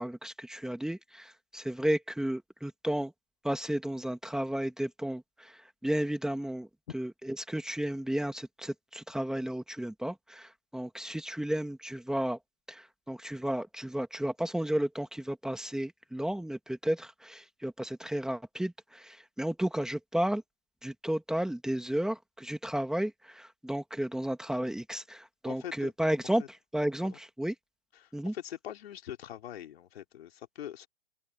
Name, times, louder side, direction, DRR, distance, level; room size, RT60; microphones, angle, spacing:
voice 1, 0.0-3.1 3.4-6.7 6.9-7.1 7.5-12.4 12.7-20.4 20.8-26.4 26.7-27.5 28.1-28.3, right 1 dB, ahead, 2.1 m, -33 dB
voice 2, 25.5-25.9 26.4-26.5 27.0-27.2 27.9-30.9, left 11 dB, 65° left, 3.5 m, -43 dB
open air
hypercardioid pair, 140°, 32 cm